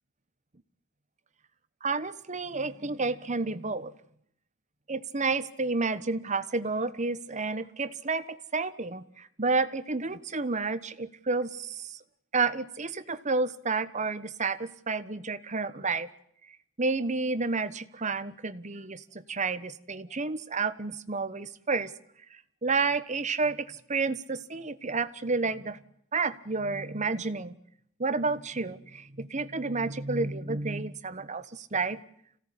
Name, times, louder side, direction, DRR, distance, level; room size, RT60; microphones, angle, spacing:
voice 1, 1.8-3.9 4.9-12.0 12.3-16.1 16.8-21.9 22.6-25.8 26.1-27.6 28.0-32.0, right 3 dB, 35° right, 14 dB, 1.1 m, -30 dB
26.5 x 17.5 x 9.9 m, 0.70 s
head